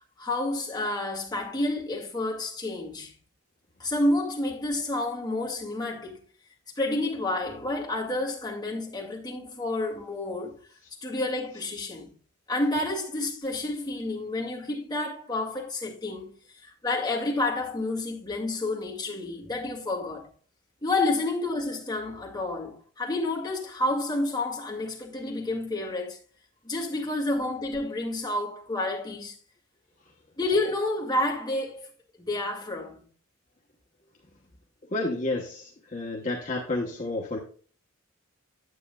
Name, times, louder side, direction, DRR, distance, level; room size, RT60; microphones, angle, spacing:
voice 1, 0.2-3.1 3.8-6.2 6.8-10.6 11.0-12.1 12.5-16.3 16.6-20.3 20.8-26.2 26.6-29.3 30.4-31.9 32.2-33.1, left 2 dB, 20° left, 2.1 m, -29 dB
voice 2, 34.9-37.4, left 2 dB, 35° left, 1.1 m, -30 dB
9.7 x 8.5 x 2.3 m
head